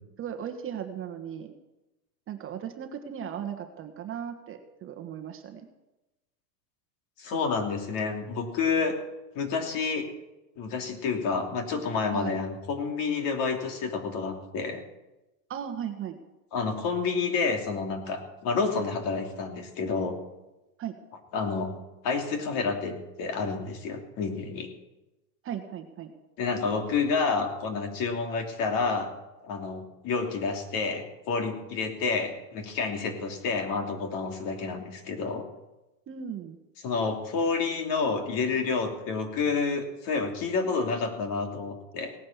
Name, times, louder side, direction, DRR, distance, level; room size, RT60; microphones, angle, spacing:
voice 1, 0.2-1.5 2.3-5.7 12.1-12.4 15.5-16.2 20.8-21.0 25.4-26.1 36.1-36.6, right 9 dB, 25° right, 6 dB, 1.3 m, -37 dB
voice 2, 7.2-8.9 9.3-10.1 10.6-14.8 16.5-20.2 21.3-21.7 22.0-24.7 26.4-29.1 29.4-35.4 36.8-42.2, left 4 dB, 45° left, 4 dB, 2.9 m, -29 dB
17.5 x 9.5 x 7.2 m, 1.0 s
supercardioid pair, 135°, 47 cm